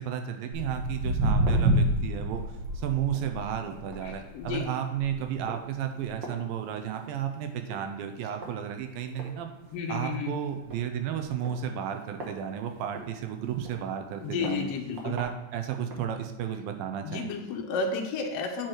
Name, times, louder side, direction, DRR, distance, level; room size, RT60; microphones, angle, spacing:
voice 1, 0.0-2.4 2.7-9.5 9.9-14.7 15.0-17.3, right 9 dB, 85° right, 6 dB, 2.5 m, -33 dB
Walk footsteps, 0.5-7.2 7.5-7.9 8.4-8.5 9.2-9.3 9.7-9.8 9.9-10.0 10.6-10.8 11.4-13.0 13.6-13.7 14.4-14.5 15.0-15.2 15.9-16.0, right 1 dB, 65° right, 1.1 m, -29 dB
voice 2, 4.0-4.7 9.7-10.3 14.2-15.1 17.0-18.7, left 4 dB, 75° left, 2 dB, 1.4 m, -32 dB
9.4 x 4.6 x 4.5 m, 1.0 s
omnidirectional pair, 4.1 m